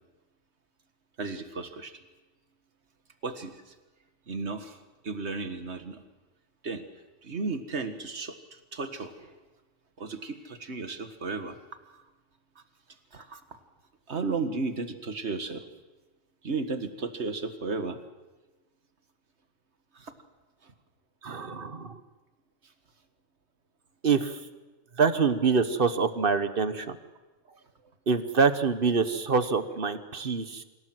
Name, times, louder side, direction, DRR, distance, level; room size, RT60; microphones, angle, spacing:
voice 1, 1.2-1.9 3.2-3.7 4.3-6.0 6.6-6.8 7.2-9.4 10.0-11.6 11.9-12.0 12.6-12.7 13.1-13.6 14.1-15.7 16.4-18.0 19.9-20.1 20.6-20.7, right 4 dB, 70° right, 8 dB, 1.9 m, -34 dB
voice 2, 21.2-22.0 24.0-24.4 25.0-27.0 28.1-30.6, right 5 dB, 50° right, 11 dB, 1.3 m, -25 dB
25.5 x 17.0 x 7.8 m, 1.2 s
omnidirectional pair, 1.2 m